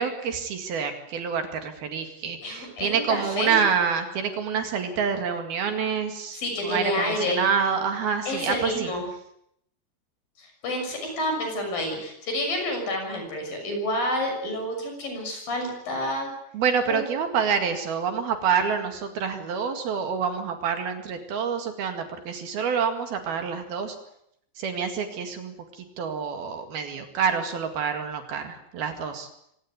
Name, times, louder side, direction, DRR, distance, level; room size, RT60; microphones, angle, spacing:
voice 1, 0.0-8.9 16.5-24.0 24.6-29.3, right 6 dB, 65° right, 7 dB, 3.9 m, -27 dB
voice 2, 2.4-3.6 6.3-7.4 8.3-9.1 10.4-16.3 16.9-17.0, left 1 dB, 55° left, 4 dB, 8.0 m, -29 dB
25.0 x 18.0 x 9.6 m, 0.74 s
omnidirectional pair, 5.0 m